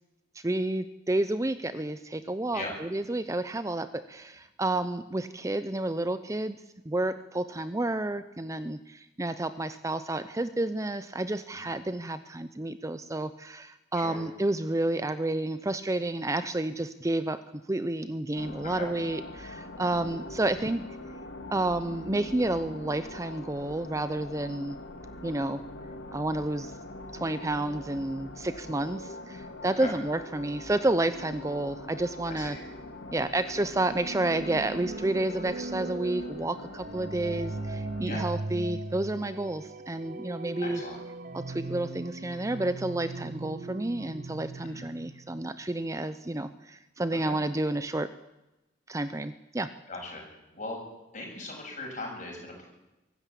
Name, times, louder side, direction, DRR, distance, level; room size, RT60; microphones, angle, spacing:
voice 1, 0.3-17.4 17.7-20.8 21.5-24.8 25.2-25.6 26.1-26.7 27.1-32.6 33.1-40.8 41.3-48.1 48.9-49.7, right 2 dB, 15° right, 12 dB, 0.6 m, -30 dB
sound 1, 18.3-38.0, left 1 dB, 85° left, 2.4 m, -43 dB
voice 2, 32.3-32.6 38.0-38.3 40.6-41.0 44.6-44.9 47.2-47.4 49.9-50.8 51.1-52.6, left 2 dB, 40° left, 0 dB, 7.3 m, -39 dB
sound 2, 33.6-45.5, right 2 dB, 50° right, 0.8 m, -39 dB
23.5 x 13.5 x 8.5 m, 0.99 s
head